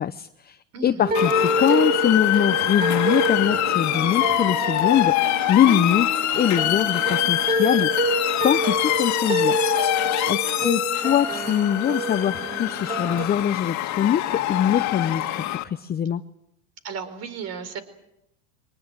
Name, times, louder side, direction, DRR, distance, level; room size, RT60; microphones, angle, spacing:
voice 1, 0.0-0.6 0.8-8.1 8.4-9.6 10.3-16.2, left 10 dB, 25° left, 10 dB, 0.8 m, -23 dB
sound 1, 1.0-13.3, right 1 dB, 20° right, 3.5 m, -27 dB
Motor vehicle (road) / Siren, 1.1-15.6, left 14 dB, 45° left, 2.1 m, -25 dB
voice 2, 10.2-10.7 16.8-17.8, right 5 dB, 40° right, 13 dB, 4.4 m, -35 dB
24.5 x 19.5 x 9.1 m, 0.82 s
supercardioid pair, 110°, 38 cm